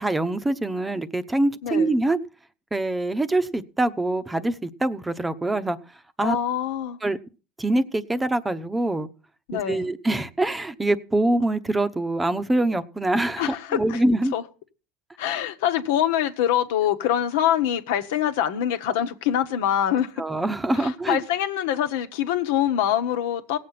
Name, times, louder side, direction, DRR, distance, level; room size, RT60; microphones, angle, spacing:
voice 1, 0.0-2.2 2.7-5.8 6.2-6.4 7.0-7.2 7.6-9.1 9.5-14.3 20.2-21.2, right 2 dB, 10° right, 0.9 m, -24 dB
voice 2, 6.2-7.0 9.5-9.9 13.4-14.0 14.3-14.4 15.2-20.1 20.8-23.6, left 10 dB, 80° left, 1.3 m, -24 dB
17.5 x 7.8 x 5.9 m
supercardioid pair, 110°, 0 cm